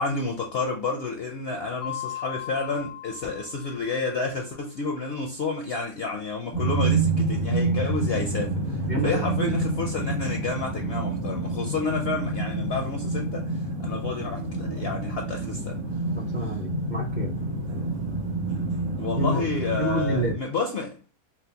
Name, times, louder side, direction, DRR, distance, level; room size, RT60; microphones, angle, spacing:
voice 1, 0.0-15.8 19.0-21.0, left 4 dB, 65° left, 0.6 m, -30 dB
Mallet percussion, 1.8-4.4, left 12 dB, 85° left, 1.1 m, -38 dB
sound 1, 6.5-20.3, right 2 dB, 90° right, 1.8 m, -28 dB
voice 2, 8.9-9.5 16.2-17.3 19.2-19.4 19.8-20.4, right 1 dB, 50° right, 0.6 m, -28 dB
4.5 x 2.0 x 2.7 m
omnidirectional pair, 1.6 m